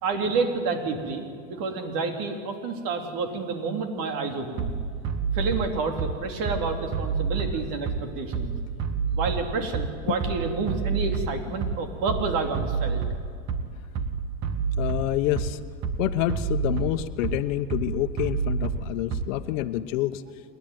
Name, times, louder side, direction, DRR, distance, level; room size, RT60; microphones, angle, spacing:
voice 1, 0.0-4.7 5.3-8.5 9.1-13.0, right 4 dB, 60° right, 5 dB, 3.1 m, -29 dB
Bass drum, 4.6-19.6, right 5 dB, 45° right, 1.9 m, -29 dB
voice 2, 14.8-15.6 16.0-20.2, left 14 dB, 75° left, 12 dB, 1.1 m, -27 dB
28.0 x 10.5 x 9.4 m, 2.2 s
hypercardioid pair, 95°, 39 cm